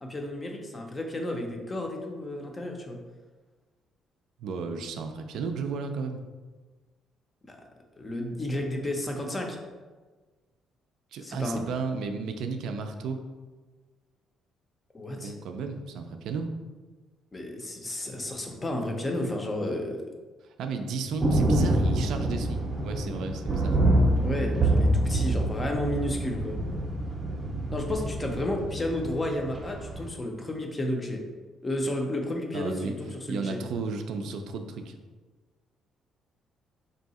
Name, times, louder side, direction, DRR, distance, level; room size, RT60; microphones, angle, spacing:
voice 1, 0.0-3.0 7.5-7.6 8.0-9.6 11.2-11.7 14.9-15.3 17.3-20.0 24.2-26.6 27.7-31.2 31.6-33.6, left 1 dB, 20° left, 2 dB, 0.5 m, -32 dB
voice 2, 4.4-6.2 11.1-13.2 15.1-16.5 20.4-23.8 32.5-32.9 33.3-34.9, right 4 dB, 70° right, 6 dB, 0.4 m, -34 dB
sound 1, 21.2-30.1, right 1 dB, 25° right, 0.6 m, -26 dB
3.5 x 2.7 x 4.1 m, 1.3 s
cardioid pair, 150°, 0 cm